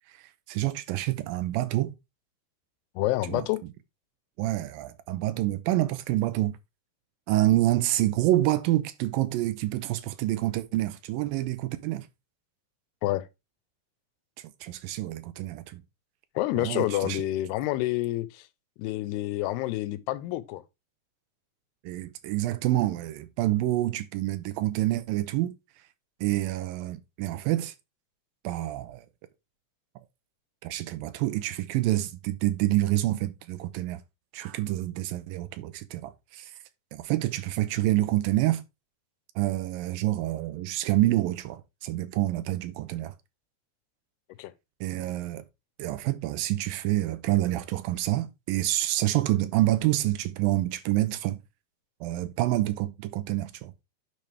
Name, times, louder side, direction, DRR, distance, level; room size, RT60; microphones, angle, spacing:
voice 1, 0.1-1.9 3.3-3.5 4.4-6.6 7.3-12.1 14.4-15.8 16.6-17.2 21.8-25.5 26.2-27.7 28.4-29.1 30.6-34.0 34.3-36.5 36.9-38.6 39.4-43.1 44.8-45.4 45.8-51.4 52.0-53.8, right 15 dB, 80° right, 2.1 m, -27 dB
voice 2, 3.0-3.6 13.0-13.3 16.4-18.5 18.8-20.6 44.4-44.5, left 16 dB, 80° left, 2.6 m, -28 dB
10.5 x 5.3 x 3.3 m
omnidirectional pair, 4.8 m